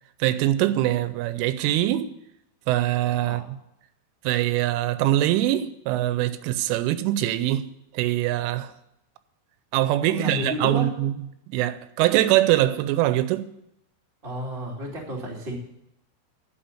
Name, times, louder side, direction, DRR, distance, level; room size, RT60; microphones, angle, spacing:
voice 1, 0.2-2.1 2.7-3.6 4.3-8.7 9.7-11.1 11.5-13.5, right 14 dB, 85° right, 3.1 m, -23 dB
voice 2, 10.1-10.9 14.2-15.5, right 1 dB, 40° right, 0.8 m, -31 dB
9.6 x 7.0 x 8.9 m
omnidirectional pair, 5.6 m